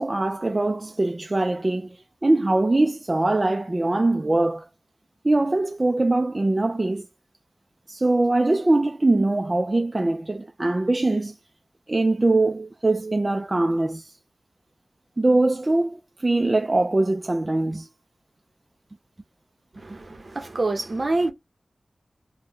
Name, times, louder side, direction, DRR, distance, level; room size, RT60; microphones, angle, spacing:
voice 1, 0.0-2.0 2.2-4.7 5.2-7.1 7.9-11.4 11.9-14.1 15.2-17.9, right 2 dB, 30° right, 0.3 m, -22 dB
voice 2, 19.7-21.3, right 2 dB, 50° right, 0.7 m, -26 dB
3.5 x 2.1 x 2.9 m
wide cardioid pair, 80°, 0 cm